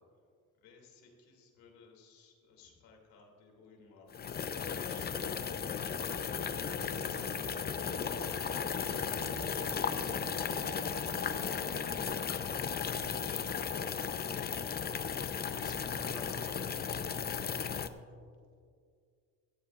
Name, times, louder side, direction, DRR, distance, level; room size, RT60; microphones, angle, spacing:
voice 1, 0.6-6.3, left 4 dB, 80° left, 0 dB, 2.8 m, -61 dB
sound 1, 4.1-17.9, left 7 dB, 30° left, 0.5 m, -35 dB
sound 2, 6.0-12.0, right 5 dB, 90° right, 1.6 m, -51 dB
voice 2, 8.1-8.4 14.9-17.0, left 2 dB, 10° left, 0 dB, 1.6 m, -51 dB
17.0 x 14.0 x 2.5 m, 2.2 s
cardioid pair, 115°, 34 cm